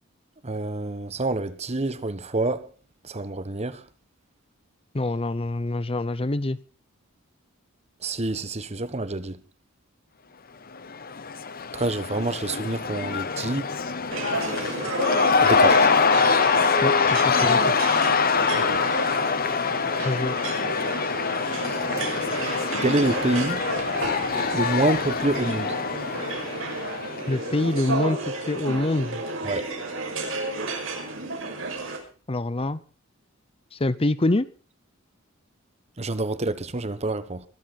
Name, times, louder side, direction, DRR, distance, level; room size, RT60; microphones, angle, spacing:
voice 1, 0.4-2.7 3.0-3.8 8.0-9.4 11.7-13.7 15.4-15.9 18.5-18.6 22.8-23.7 24.5-25.7 29.4-29.6 36.0-37.4, right 2 dB, 35° right, 1.2 m, -27 dB
voice 2, 4.9-6.6 16.8-17.7 20.0-20.4 27.3-29.2 32.3-32.8 33.7-34.5, left 2 dB, 30° left, 0.7 m, -25 dB
Cheering / Crowd, 10.8-27.6, left 5 dB, 45° left, 1.1 m, -24 dB
sound 1, 14.1-32.0, right 3 dB, 80° right, 6.1 m, -32 dB
23.5 x 12.5 x 4.2 m
head